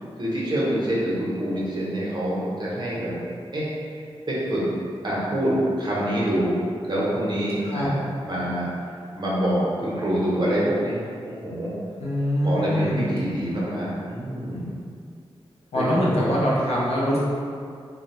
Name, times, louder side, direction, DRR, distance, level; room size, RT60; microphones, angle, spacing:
voice 1, 0.2-3.2 3.5-3.7 4.3-4.6 5.0-6.6 6.8-7.9 8.2-8.7 9.2-11.7 12.4-14.8 15.7-16.1, right 1 dB, 45° right, -7 dB, 0.8 m, -26 dB
voice 2, 7.6-7.9 12.0-13.1 15.7-17.2, equal, 85° left, -6 dB, 0.6 m, -23 dB
2.2 x 2.1 x 2.9 m, 2.3 s
cardioid pair, 55°, 10 cm